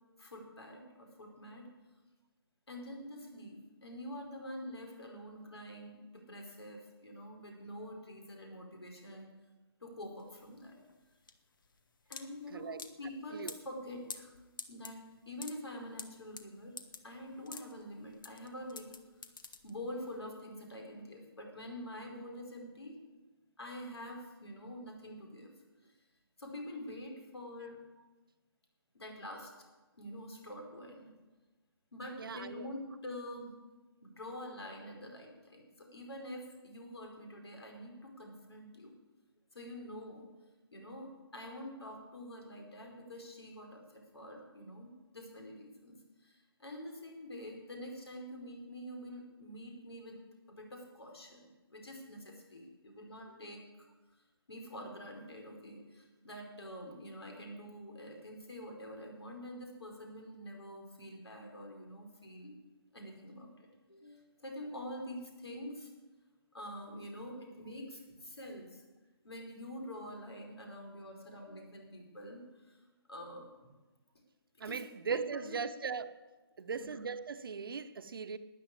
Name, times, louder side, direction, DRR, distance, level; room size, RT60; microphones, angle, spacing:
voice 1, 0.2-1.7 2.7-9.3 9.8-10.8 12.1-14.3 14.7-16.7 17.0-18.9 19.6-23.0 23.6-25.5 25.8-25.9 26.4-27.9 28.9-29.5 30.0-31.1 31.9-33.5 34.0-38.9 39.5-40.3 40.7-46.0 46.2-53.9 54.5-62.5 62.9-65.9 66.5-68.8 69.2-72.8 73.1-73.5 74.6-75.6 76.7-77.0, left 1 dB, 80° left, 4.9 m, -46 dB
sound 1, 10.2-20.1, left 5 dB, 55° left, 1.3 m, -49 dB
voice 2, 32.2-32.7 74.6-76.1 76.6-78.4, right 5 dB, 60° right, 1.0 m, -38 dB
13.0 x 9.8 x 8.7 m
figure-of-eight pair, 150°, 13 cm